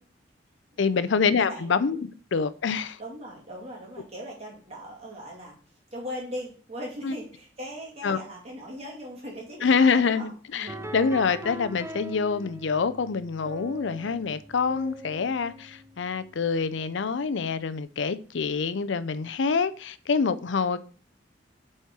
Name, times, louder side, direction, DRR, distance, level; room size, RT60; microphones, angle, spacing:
voice 1, 0.8-3.0 7.0-7.1 8.0-8.2 9.6-20.8, left 5 dB, 75° left, 0.5 m, -26 dB
voice 2, 3.0-5.6 5.9-10.9, equal, 35° right, 2.6 m, -39 dB
sound 1, 10.7-16.8, right 1 dB, 15° right, 0.5 m, -42 dB
8.0 x 4.4 x 4.7 m
head